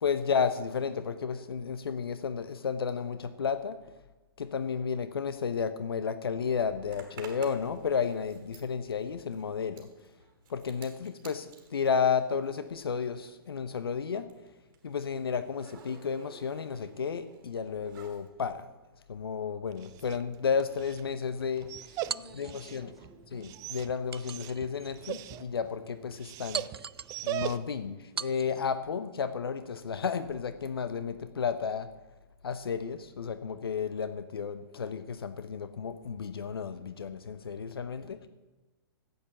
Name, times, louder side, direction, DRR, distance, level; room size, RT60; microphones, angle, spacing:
voice 1, 0.0-3.8 4.4-9.9 10.5-14.3 14.8-18.7 19.1-21.7 22.3-22.9 23.3-26.7 27.2-31.9 32.4-38.2, left 6 dB, 75° left, 11 dB, 0.8 m, -32 dB
Zipper (clothing), 6.9-13.1 13.3-18.3, right 6 dB, 50° right, 2.9 m, -54 dB
Dog, 19.6-27.9, right 13 dB, 25° right, 0.5 m, -41 dB
voice 2, 22.0-23.5 38.0-38.3, equal, ahead, -2 dB, 3.0 m, -55 dB
sound 1, 22.1-22.8 24.1-24.9 25.5-25.6 26.5-27.2 28.2-28.7, right 6 dB, 85° right, 0.4 m, -39 dB
11.0 x 8.4 x 6.9 m, 1.2 s
figure-of-eight pair, 115°, 13 cm